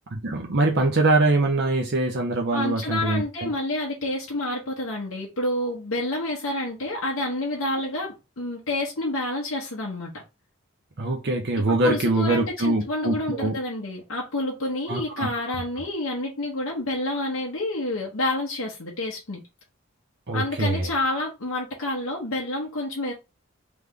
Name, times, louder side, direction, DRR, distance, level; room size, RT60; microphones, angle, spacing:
voice 1, 0.1-3.5 11.0-13.5 14.9-15.3 20.3-20.9, right 2 dB, 55° right, 0.7 m, -23 dB
voice 2, 2.5-10.1 11.7-19.4 20.3-23.1, left 1 dB, 75° left, 1.0 m, -28 dB
3.4 x 3.1 x 3.7 m
head